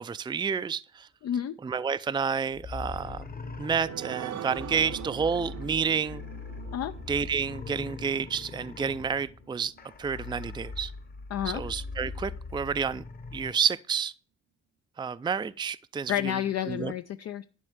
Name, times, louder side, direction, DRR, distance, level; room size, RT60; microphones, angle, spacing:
voice 1, 0.0-1.1 1.6-3.2 3.6-6.2 7.1-9.7 10.0-10.9 11.5-13.0 13.3-14.1 15.0-16.3 16.7-16.9, right 6 dB, 15° right, 0.4 m, -30 dB
voice 2, 1.2-1.6 6.7-6.9 11.3-11.6 16.1-17.4, left 10 dB, 55° left, 0.6 m, -30 dB
sound 1, 2.5-13.5, left 4 dB, 30° left, 1.0 m, -41 dB
sound 2, 3.2-10.3 10.7-10.8 11.2-11.3, right 9 dB, 60° right, 0.9 m, -43 dB
11.0 x 4.2 x 7.9 m
cardioid pair, 105°, 30 cm